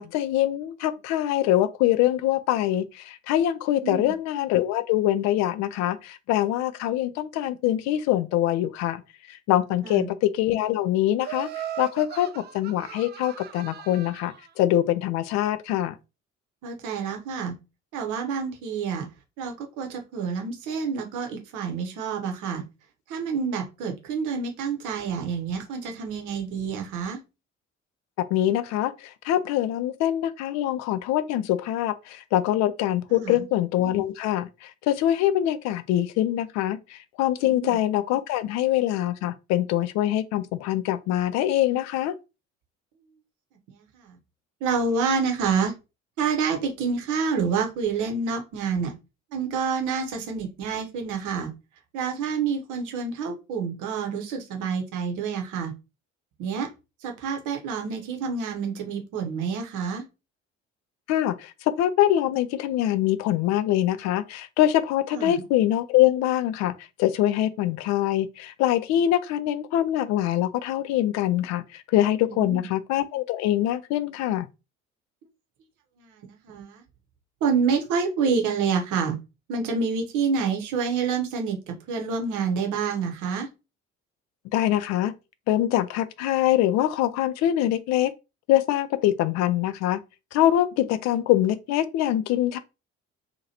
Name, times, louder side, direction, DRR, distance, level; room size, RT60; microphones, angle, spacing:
voice 1, 0.0-9.0 9.3-15.9 28.3-42.1 61.1-61.5 61.8-66.7 67.0-74.5 84.5-85.1 85.5-88.1 88.5-90.0 90.3-92.6, left 13 dB, 45° left, 0.4 m, -24 dB
voice 2, 3.8-4.1 9.8-10.1 16.6-17.5 17.9-19.1 19.4-22.6 23.1-27.2 33.1-33.4 37.4-37.8 43.7-44.2 44.6-45.7 46.2-48.9 49.3-51.5 51.9-55.7 56.4-56.7 57.0-60.0 65.1-65.4 72.3-72.7 76.0-76.8 77.4-79.2 79.5-83.5, right 5 dB, 55° right, 0.9 m, -28 dB
Laughter, 11.2-14.4, right 11 dB, 30° right, 0.4 m, -38 dB
2.8 x 2.6 x 2.8 m
figure-of-eight pair, 50°, 38 cm